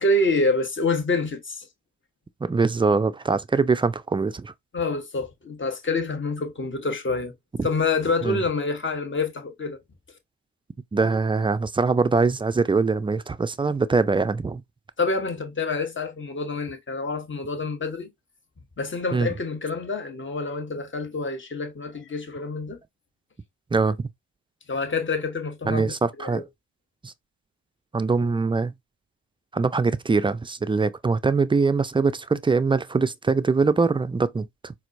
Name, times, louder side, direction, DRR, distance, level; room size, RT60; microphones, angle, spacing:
voice 1, 0.0-1.7 4.7-7.3 7.6-9.8 15.0-18.1 18.8-22.8 24.7-25.9 26.2-26.4, left 3 dB, 30° left, 1.1 m, -27 dB
voice 2, 2.4-4.5 7.6-7.7 8.2-8.4 10.9-14.6 19.1-19.3 23.7-24.0 25.7-26.4 27.0-27.1 27.9-28.7 29.5-34.7, right 4 dB, 15° right, 0.3 m, -23 dB
4.3 x 2.1 x 2.6 m
supercardioid pair, 50°, 37 cm